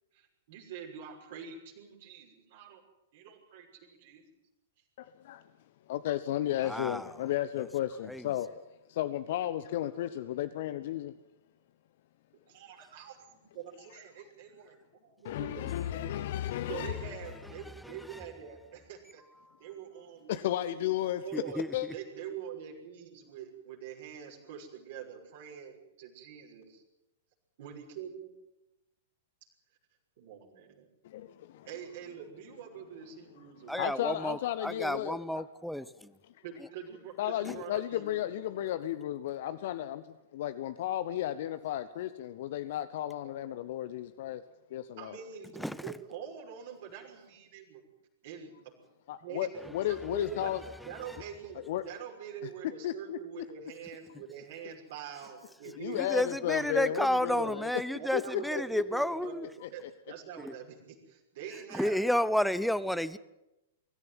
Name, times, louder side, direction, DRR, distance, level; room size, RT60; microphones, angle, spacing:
voice 1, 0.1-2.8 3.1-4.2 12.5-14.8 15.0-15.6 15.9-16.3 16.7-19.2 19.6-20.8 21.2-21.6 21.9-26.8 27.6-28.3 30.2-30.9 31.7-34.3 36.4-38.8 45.0-47.8 48.2-48.7 49.2-50.5 50.8-56.6 57.1-57.6 58.0-62.0, right 8 dB, 50° right, 6.0 m, -45 dB
voice 2, 5.0-5.4 5.9-8.6 8.9-11.1 15.2-17.0 20.3-21.2 21.5-21.9 31.0-31.7 33.8-35.4 37.2-40.1 40.3-44.4 44.7-45.2 49.1-50.6 51.7-51.8 52.8-53.4 55.8-57.7 58.1-58.4 59.6-59.9, left 12 dB, 50° left, 0.9 m, -34 dB
voice 3, 6.5-7.3 7.5-7.7 8.0-8.4 15.6-15.7 16.6-18.2 19.3-19.4 21.3-21.9 33.7-36.1 36.6-36.7 37.4-37.7 45.5-46.0 49.6-51.4 55.9-59.5 60.4-60.5 61.5-63.2, equal, ahead, 0.8 m, -33 dB
24.0 x 14.5 x 9.6 m
figure-of-eight pair, 105°, 0 cm